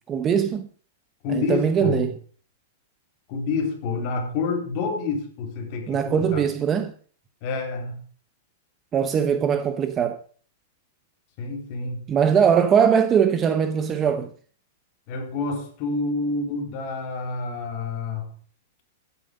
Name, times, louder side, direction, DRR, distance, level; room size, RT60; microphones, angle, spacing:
voice 1, 0.1-0.7 1.3-2.1 5.9-6.9 8.9-10.2 12.1-14.3, right 7 dB, 20° right, 0.8 m, -21 dB
voice 2, 1.2-2.1 3.3-6.5 7.4-8.0 11.4-12.1 15.1-18.3, left 4 dB, 35° left, 3.7 m, -28 dB
12.0 x 9.8 x 5.2 m
supercardioid pair, 165°, 0 cm